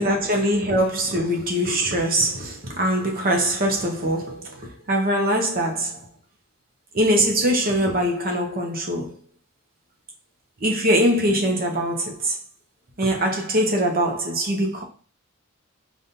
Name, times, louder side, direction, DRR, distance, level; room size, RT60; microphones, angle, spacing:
voice 1, 0.0-6.0 6.9-9.2 10.6-12.4 13.0-14.8, right 1 dB, 45° right, 0.8 m, -22 dB
5.1 x 2.5 x 2.8 m
head